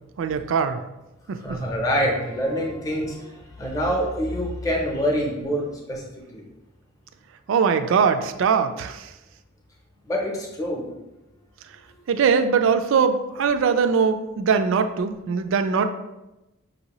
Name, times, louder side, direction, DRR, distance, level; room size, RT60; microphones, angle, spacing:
voice 1, 0.2-0.8 1.3-1.6 7.5-9.1 12.1-15.9, right 6 dB, 65° right, 8 dB, 0.3 m, -21 dB
voice 2, 1.4-6.0 6.3-6.4 10.1-10.9 11.8-12.0, equal, 15° left, -1 dB, 0.7 m, -26 dB
5.5 x 2.7 x 2.9 m, 0.97 s
head